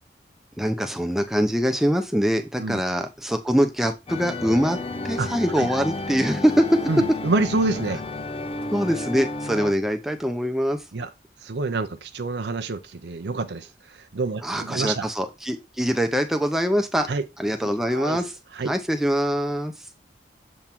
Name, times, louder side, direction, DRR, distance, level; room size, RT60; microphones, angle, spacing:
voice 1, 0.6-4.8 5.0-6.6 8.7-10.8 14.4-17.1 17.4-18.3 18.6-19.7, equal, ahead, 0.7 m, -23 dB
sound 1, 4.1-9.7, left 2 dB, 30° left, 0.6 m, -32 dB
voice 2, 6.9-8.0 10.9-11.1 11.4-15.1 17.1-17.2 17.9-18.2 18.5-18.7, right 3 dB, 75° right, 0.6 m, -27 dB
7.2 x 3.6 x 4.4 m
head